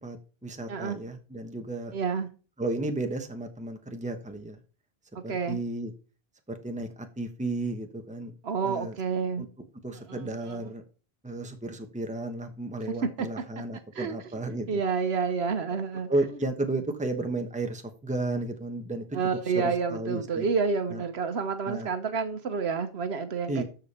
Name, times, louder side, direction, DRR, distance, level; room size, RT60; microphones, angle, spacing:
voice 1, 0.0-1.9 2.6-4.6 5.2-5.9 6.5-8.3 8.6-9.0 9.4-9.5 9.8-10.8 11.2-14.8 16.1-19.2 19.5-20.5 20.9-21.0 21.7-21.9 23.5-23.6, right 2 dB, 5° right, 1.1 m, -33 dB
voice 2, 1.9-2.3 5.3-5.6 8.4-9.4 10.1-10.6 13.2-13.3 13.9-14.1 14.7-16.1 19.1-23.6, right 5 dB, 75° right, 1.2 m, -29 dB
13.5 x 5.1 x 4.3 m
omnidirectional pair, 1.1 m